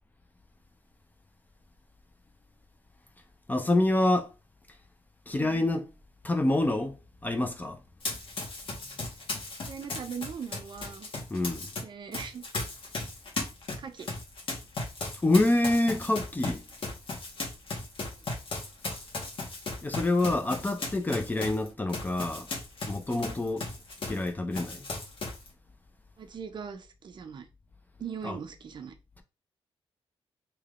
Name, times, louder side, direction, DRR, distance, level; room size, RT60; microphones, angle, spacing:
voice 1, 3.5-4.3 5.3-5.8 6.2-7.8 11.3-11.7 15.2-16.6 19.8-22.5 22.9-23.7 24.0-24.8 28.2-28.4, left 2 dB, 15° left, 0.5 m, -27 dB
voice 2, 5.3-5.6 9.6-11.1 11.8-12.5 13.8-14.1 26.2-27.5 28.0-28.9, right 6 dB, 50° right, 0.5 m, -40 dB
Run, 8.0-11.8 12.1-24.3 24.5-25.5, left 3 dB, 60° left, 1.2 m, -36 dB
3.2 x 2.9 x 2.4 m
cardioid pair, 110°, 10 cm